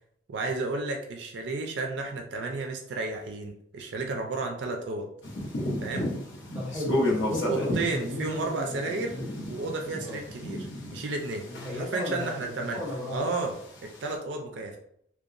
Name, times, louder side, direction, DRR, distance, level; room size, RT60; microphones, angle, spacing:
voice 1, 0.3-5.1 5.8-6.1 7.5-9.2 9.5-12.8 13.1-13.5 13.8-14.8, right 3 dB, 65° right, 2 dB, 0.4 m, -32 dB
sound 1, 5.2-12.0 12.2-14.1, left 1 dB, 70° left, 0.7 m, -32 dB
voice 2, 6.5-8.8 9.1-9.3 10.0-10.2 11.5-13.2, left 1 dB, 5° right, -7 dB, 0.7 m, -35 dB
2.8 x 2.1 x 2.4 m, 0.71 s
head